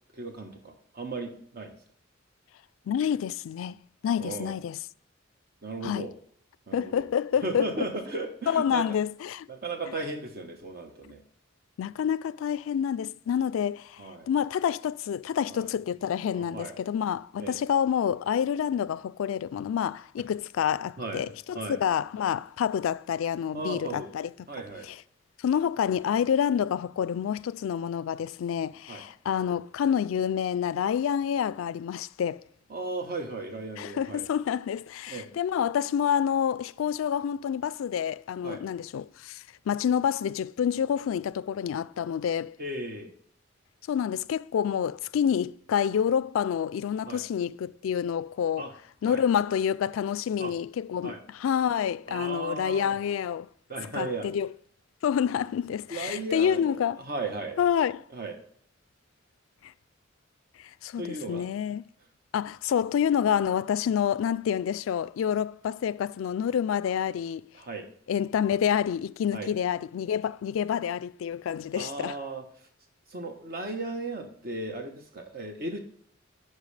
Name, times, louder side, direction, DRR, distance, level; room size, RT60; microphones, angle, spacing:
voice 1, 0.1-1.7 4.2-4.5 5.6-6.1 6.7-7.1 7.4-9.0 9.5-11.2 14.0-14.3 15.5-15.7 16.3-16.8 17.4-17.6 21.0-21.2 21.5-21.8 23.5-24.1 24.5-24.9 28.9-29.0 32.7-34.2 35.1-35.3 38.4-38.6 42.6-43.1 47.1-47.2 48.6-48.7 49.0-49.2 50.4-50.5 51.0-51.2 52.1-53.0 53.7-54.3 55.9-57.6 58.1-58.4 61.0-61.5 67.5-67.9 69.3-69.5 71.8-72.4 73.1-75.8, right 2 dB, 50° right, 1.0 m, -36 dB
voice 2, 2.9-3.8 4.0-4.8 5.8-6.1 6.7-7.9 8.5-9.5 11.8-24.3 24.9-25.0 25.4-32.4 33.8-42.6 43.9-48.7 49.0-53.5 53.9-54.5 55.0-57.0 57.6-58.0 60.8-61.8 62.3-67.4 68.1-72.2, left 8 dB, 85° left, 0.3 m, -28 dB
10.5 x 5.5 x 3.3 m
head